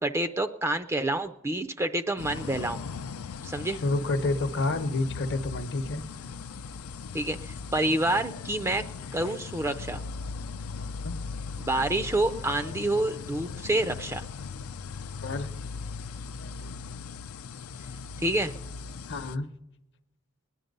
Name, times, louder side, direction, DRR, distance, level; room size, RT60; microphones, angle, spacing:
voice 1, 0.0-2.8 3.4-3.8 7.1-8.8 9.1-10.0 11.6-14.2 18.2-18.5, right 1 dB, 15° right, 7 dB, 0.4 m, -28 dB
sound 1, 2.2-19.4, left 5 dB, 75° left, 0.5 m, -39 dB
voice 2, 3.8-6.0 11.0-11.2 15.2-15.5 19.1-19.5, left 2 dB, 55° left, 10 dB, 0.8 m, -29 dB
20.0 x 10.0 x 5.3 m, 0.96 s
head